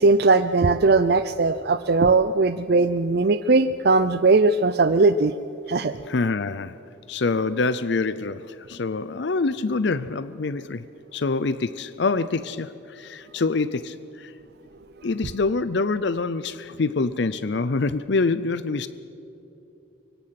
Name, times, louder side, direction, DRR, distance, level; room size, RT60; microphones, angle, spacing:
voice 1, 0.0-5.3 5.7-5.9, right 3 dB, 55° right, 11 dB, 0.5 m, -19 dB
voice 2, 6.0-6.8 7.1-10.8 11.1-14.3 15.0-18.9, left 3 dB, 65° left, 14 dB, 0.6 m, -25 dB
24.5 x 24.0 x 5.9 m, 3.0 s
head